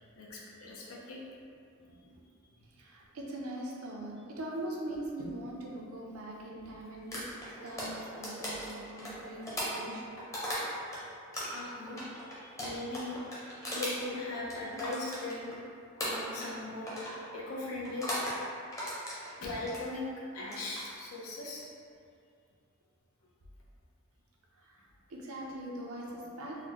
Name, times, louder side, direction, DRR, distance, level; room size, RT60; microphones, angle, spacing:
voice 1, 0.2-1.2 11.5-13.2 13.7-15.5 16.0-18.1 19.4-20.0 20.3-21.7, left 2 dB, 80° left, -4 dB, 0.7 m, -39 dB
voice 2, 1.8-2.2 2.8-7.3 7.6-10.2 19.1-19.4 24.6-24.8 25.1-26.6, right 1 dB, 75° right, -2 dB, 0.6 m, -42 dB
sound 1, 7.1-11.0 11.3-15.6 16.0-16.6 16.9-17.2 17.8-18.4 18.7-19.8 20.4-20.8, equal, 15° left, 0.7 m, -37 dB
4.0 x 2.1 x 2.9 m, 2.3 s
head